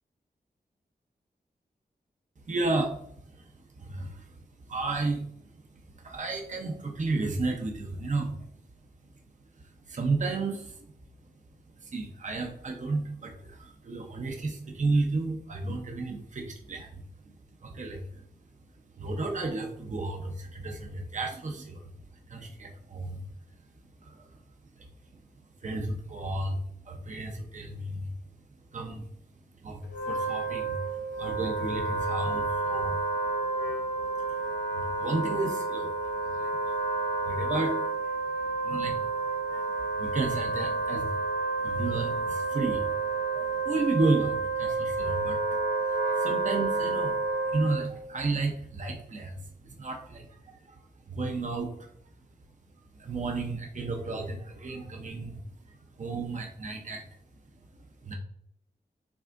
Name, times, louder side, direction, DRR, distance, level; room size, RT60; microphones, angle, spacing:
voice 1, 2.5-3.0 3.4-3.5 3.8-4.3 4.7-5.3 6.0-8.5 9.9-10.8 11.8-17.0 17.6-18.0 19.0-21.9 22.3-23.2 24.0-24.3 25.6-26.6 26.8-28.1 28.7-29.1 29.6-33.0 34.3-35.9 36.2-36.7 37.2-37.8 38.6-39.0 39.5-39.7 40.0-41.1 41.6-42.9 43.3-45.4 45.9-50.8 51.1-51.9 53.0-55.4 56.0-57.0 58.0-58.1, right 3 dB, 50° right, 2 dB, 0.8 m, -32 dB
Wind instrument woodwind instrument, 29.8-48.0, right 3 dB, 80° left, 0.8 m, -30 dB
6.1 x 3.4 x 2.5 m, 0.68 s
cardioid pair, 65°, 17 cm